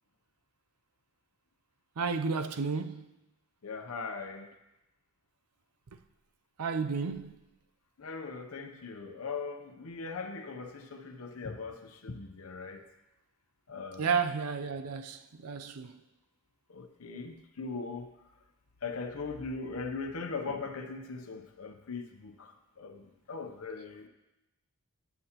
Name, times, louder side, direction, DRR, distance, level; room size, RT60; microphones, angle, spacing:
voice 1, 2.0-3.1 6.6-7.3 14.0-16.0, right 5 dB, 85° right, 0.6 m, -32 dB
voice 2, 3.6-4.5 8.0-12.8 13.7-14.1 16.7-18.1 18.8-22.5 22.8-24.1, left 4 dB, 70° left, 0.8 m, -40 dB
18.5 x 7.0 x 3.0 m
head